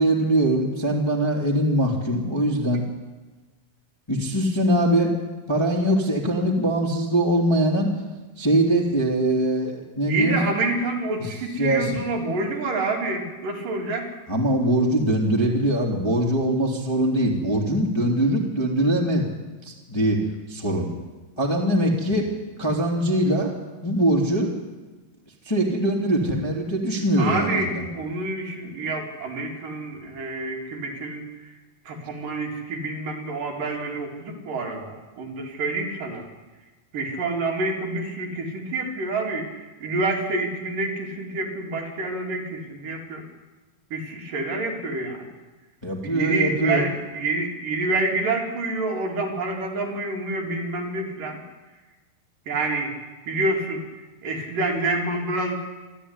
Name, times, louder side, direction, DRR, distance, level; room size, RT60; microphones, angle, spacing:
voice 1, 0.0-2.8 4.1-5.1 5.5-7.9 8.4-10.4 11.2-11.3 11.6-12.0 14.3-19.3 19.6-20.2 20.5-20.9 21.4-22.3 22.6-23.5 23.8-24.5 25.4-27.9 45.8-46.9, right 1 dB, 10° left, 0 dB, 2.5 m, -22 dB
voice 2, 10.1-14.1 27.2-31.2 31.9-36.2 36.9-39.5 39.8-43.2 43.9-45.3 46.0-51.4 52.5-52.9 53.3-53.8 54.2-55.5, right 2 dB, 60° right, 0 dB, 4.6 m, -27 dB
26.0 x 13.5 x 9.9 m, 1.2 s
omnidirectional pair, 4.4 m